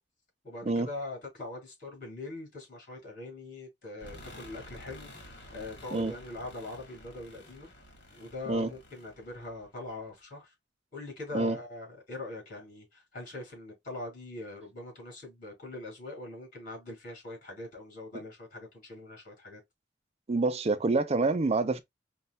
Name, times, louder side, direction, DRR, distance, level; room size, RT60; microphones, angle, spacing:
voice 1, 0.4-7.7 8.1-10.5 10.9-19.6, left 2 dB, 50° left, 2.9 m, -42 dB
sound 1, 4.0-10.1, left 1 dB, 75° left, 1.5 m, -51 dB
voice 2, 20.3-21.8, right 3 dB, 35° right, 0.5 m, -27 dB
5.3 x 2.3 x 2.2 m
head